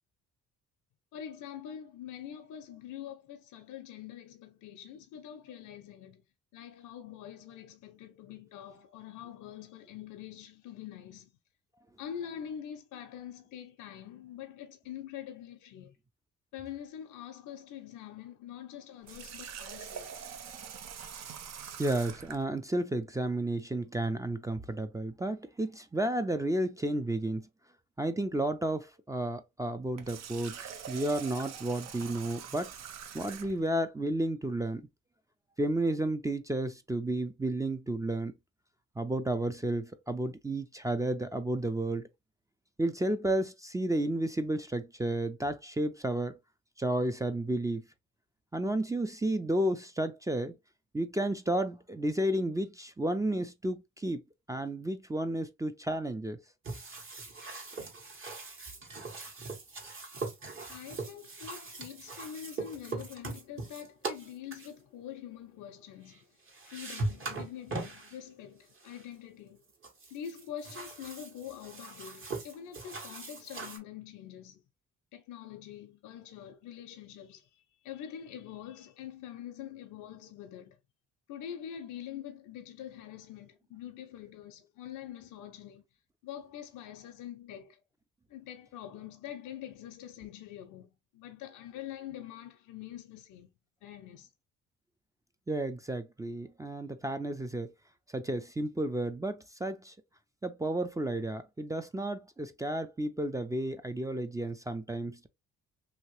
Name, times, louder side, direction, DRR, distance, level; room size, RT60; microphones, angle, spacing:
voice 1, 1.1-6.2 6.5-11.3 12.0-16.0 16.5-20.2 60.7-66.4 66.7-69.6 70.1-74.6 75.1-80.8 81.3-85.8 86.2-87.8 88.3-93.5 93.8-94.3, left 10 dB, 85° left, 0.6 m, -45 dB
Water tap faucet, 19.0-22.4 29.8-33.7, right 7 dB, 60° right, 0.6 m, -44 dB
voice 2, 21.8-27.5 28.0-32.7 33.1-34.8 35.6-38.3 39.0-42.1 42.8-46.3 46.8-47.8 48.5-50.5 50.9-54.2 54.5-56.4 95.5-97.7 98.1-99.9 100.4-105.3, right 1 dB, 10° right, 0.4 m, -32 dB
sound 1, 56.6-64.7 66.1-66.2 66.5-68.2 68.7-69.1 69.8-73.8, right 3 dB, 45° right, 1.4 m, -40 dB
2.9 x 2.8 x 3.1 m
cardioid pair, 90°, 30 cm